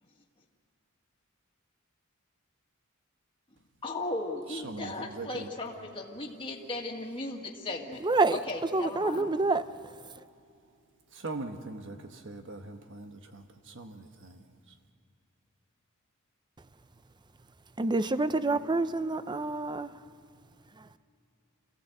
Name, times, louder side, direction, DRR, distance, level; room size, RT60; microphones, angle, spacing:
voice 1, 3.8-8.0 8.5-9.3, left 2 dB, 25° left, -1 dB, 2.1 m, -36 dB
voice 2, 4.5-5.5 11.1-14.4, right 3 dB, 60° right, 6 dB, 1.2 m, -41 dB
voice 3, 8.0-8.4 8.7-9.7 17.8-19.9 20.8-20.9, right 3 dB, 20° right, 13 dB, 0.6 m, -27 dB
27.5 x 16.0 x 8.0 m, 2.4 s
head